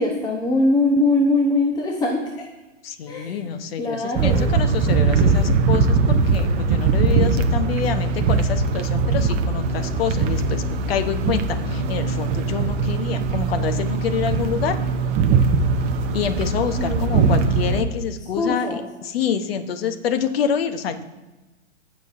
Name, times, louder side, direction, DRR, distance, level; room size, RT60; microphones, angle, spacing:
voice 1, 0.0-2.2 3.1-3.4 3.8-4.6 16.8-17.0 18.3-18.8, left 2 dB, 10° left, 0 dB, 0.8 m, -21 dB
voice 2, 2.8-14.8 16.1-21.0, left 7 dB, 50° left, 9 dB, 1.0 m, -27 dB
A stroll through an industrial estate, 4.2-17.8, right 4 dB, 20° right, 0.5 m, -21 dB
15.5 x 6.1 x 2.6 m, 1.1 s
hypercardioid pair, 125°, 37 cm